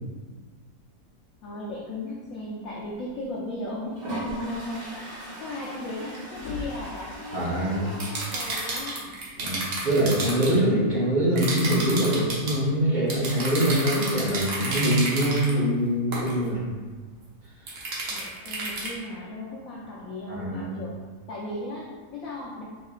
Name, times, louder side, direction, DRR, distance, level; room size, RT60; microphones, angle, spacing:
voice 1, 1.4-9.5 18.1-21.0 21.3-22.6, left 1 dB, 65° left, -5 dB, 0.9 m, -36 dB
Toilet flush, 3.0-3.1 3.9-8.8, right 1 dB, 85° right, 2.0 m, -39 dB
sound 1, 6.3-7.0 8.7-8.8 10.7-10.8 11.7-11.8, left 4 dB, 90° left, 1.5 m, -39 dB
voice 2, 7.3-7.9 9.4-9.6 9.8-16.6 17.6-17.7 20.3-20.8, right 1 dB, 30° right, -8 dB, 1.1 m, -24 dB
sound 2, 8.0-10.5 11.4-12.6 13.1-15.5 16.1-16.3 17.7-18.9, right 2 dB, 70° right, 1.4 m, -31 dB
4.3 x 3.7 x 2.4 m, 1.4 s
omnidirectional pair, 1.8 m